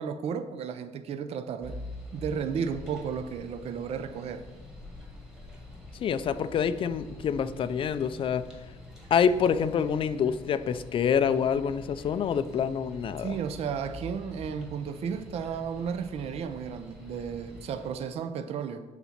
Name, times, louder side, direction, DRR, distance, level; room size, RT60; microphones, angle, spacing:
voice 1, 0.0-1.8 2.1-4.4 13.2-18.8, right 7 dB, 50° right, 10 dB, 0.5 m, -33 dB
sound 1, 1.6-17.9, left 2 dB, 5° right, 1.6 m, -46 dB
voice 2, 6.0-8.4 9.1-13.4, left 7 dB, 40° left, 13 dB, 0.4 m, -26 dB
7.0 x 4.1 x 5.8 m, 1.2 s
cardioid pair, 130°, 13 cm